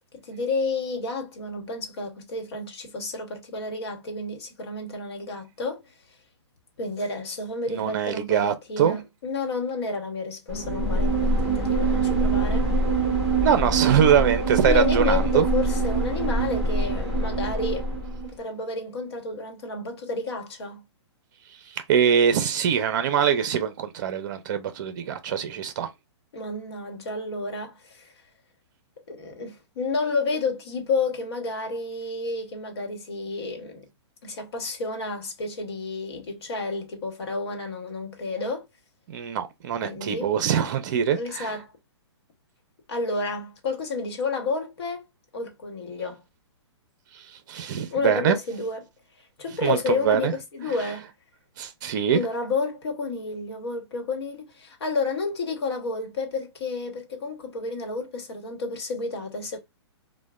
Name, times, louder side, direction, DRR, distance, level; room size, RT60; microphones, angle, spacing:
voice 1, 0.2-5.8 6.8-12.7 14.6-17.9 18.2-20.8 26.3-28.1 29.1-33.9 34.2-38.6 39.8-40.3 41.2-41.7 42.9-45.0 45.3-46.2 47.9-48.8 49.4-51.1 52.1-59.6, left 3 dB, 60° left, 1.1 m, -30 dB
voice 2, 7.7-9.0 13.4-15.5 21.9-25.9 39.1-41.5 47.5-48.4 49.6-50.3 51.6-52.2, right 8 dB, 40° right, 0.6 m, -23 dB
sound 1, 10.5-18.3, right 2 dB, 5° right, 1.0 m, -24 dB
3.2 x 2.2 x 2.3 m
hypercardioid pair, 160°, 15 cm